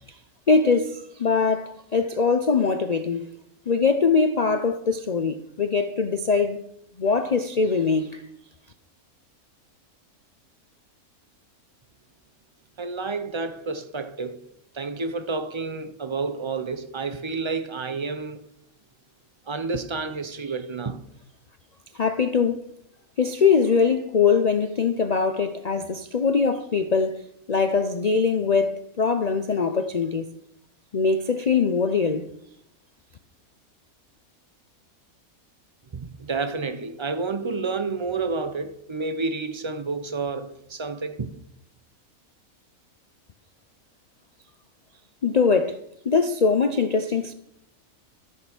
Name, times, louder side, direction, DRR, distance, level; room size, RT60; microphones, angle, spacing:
voice 1, 0.5-3.3 3.7-6.6 7.0-8.2 21.9-22.6 23.2-27.2 27.5-30.3 30.9-32.3 45.2-45.8 46.0-47.3, left 5 dB, 70° left, 0.3 m, -22 dB
voice 2, 12.8-14.4 14.7-18.5 19.5-21.0 35.9-41.3, right 4 dB, 45° right, 0.4 m, -30 dB
14.0 x 6.7 x 6.0 m
omnidirectional pair, 1.6 m